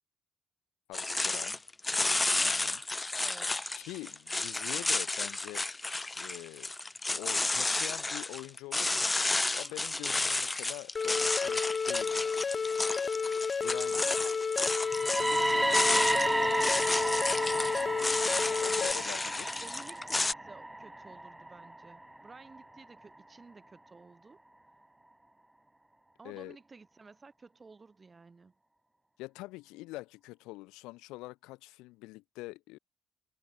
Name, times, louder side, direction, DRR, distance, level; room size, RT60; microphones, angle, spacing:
voice 1, 0.9-1.6 2.4-2.8 3.8-5.7 6.2-6.7 7.1-9.1 9.5-11.6 11.9-12.4 13.6-14.0 18.6-19.6 26.2-26.6 29.2-32.8, left 21 dB, 80° left, 2.0 m, -44 dB
sound 1, 0.9-20.3, left 2 dB, 20° left, 0.5 m, -32 dB
voice 2, 3.1-3.8 13.9-14.4 15.2-17.3 18.5-19.0 19.6-24.4 26.2-28.5, right 4 dB, 35° right, 5.5 m, -53 dB
sound 2, 11.0-18.9, left 5 dB, 45° left, 1.1 m, -31 dB
sound 3, 14.7-22.6, right 1 dB, 15° right, 1.0 m, -32 dB
hypercardioid pair, 45°, 0 cm